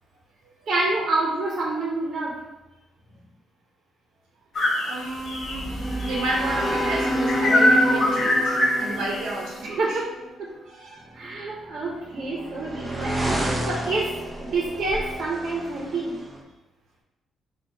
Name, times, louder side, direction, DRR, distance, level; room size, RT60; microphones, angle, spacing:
voice 1, 0.7-2.4 9.6-10.5 11.1-16.2, right 2 dB, 55° right, -3 dB, 1.0 m, -28 dB
sound 1, 4.5-6.7 7.3-9.3, left 1 dB, 50° left, 1.4 m, -23 dB
voice 2, 4.9-5.7 6.1-10.0 10.7-11.0, right 2 dB, 90° right, -3 dB, 0.9 m, -31 dB
sound 2, 5.1-10.4, equal, 5° left, 1.6 m, -28 dB
sound 3, 11.5-16.4, right 1 dB, 15° right, 0.7 m, -31 dB
4.5 x 2.5 x 4.5 m, 1.0 s
cardioid pair, 90°, 0 cm